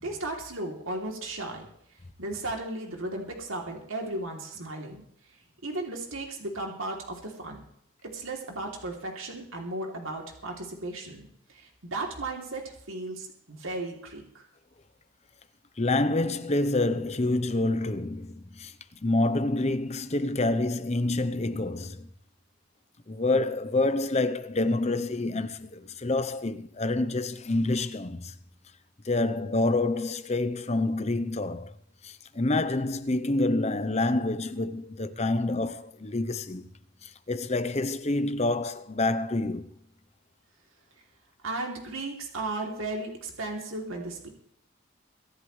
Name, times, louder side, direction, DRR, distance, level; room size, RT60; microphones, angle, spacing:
voice 1, 0.0-1.7 2.2-5.0 5.6-7.6 8.0-14.5 41.4-44.3, right 2 dB, 80° right, 3.2 m, -35 dB
voice 2, 15.8-18.7 19.0-22.1 23.1-28.4 29.0-31.7 32.0-36.7 37.0-39.7, left 2 dB, 30° left, 0.8 m, -27 dB
24.0 x 11.5 x 3.3 m
head